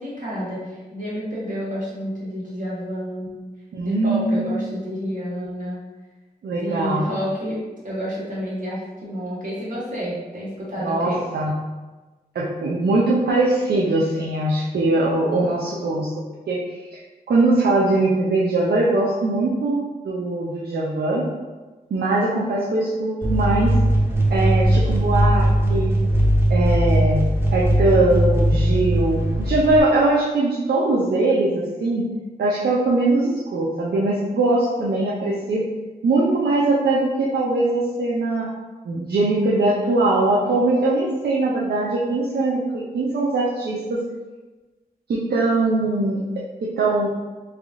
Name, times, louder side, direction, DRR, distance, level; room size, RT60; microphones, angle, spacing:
voice 1, 0.0-3.3 3.8-5.8 6.5-11.2, equal, 50° right, -7 dB, 1.5 m, -29 dB
voice 2, 3.7-4.5 6.4-7.1 10.8-11.5 12.3-16.1 16.5-17.0 17.3-21.3 21.9-23.7 24.3-25.9 26.5-27.2 27.5-32.0 32.4-35.6 36.0-38.5 38.8-44.0 45.1-46.2 46.6-47.1, right 2 dB, 75° right, -5 dB, 0.5 m, -21 dB
sound 1, 23.2-29.8, right 1 dB, 15° right, 0.7 m, -19 dB
3.4 x 2.3 x 3.6 m, 1.2 s
wide cardioid pair, 75°, 17 cm